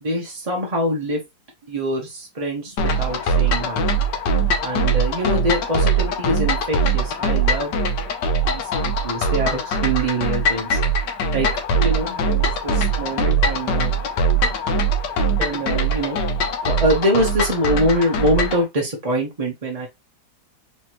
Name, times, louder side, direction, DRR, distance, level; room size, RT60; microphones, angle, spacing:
voice 1, 0.0-1.2 1.7-3.8 4.6-7.7 8.4-10.8 11.3-13.9 15.4-16.2 16.6-19.9, equal, 35° right, -1 dB, 0.6 m, -24 dB
sound 1, 2.8-18.6, right 2 dB, 75° left, 1.4 m, -21 dB
4.3 x 2.9 x 3.0 m, 0.20 s
omnidirectional pair, 1.9 m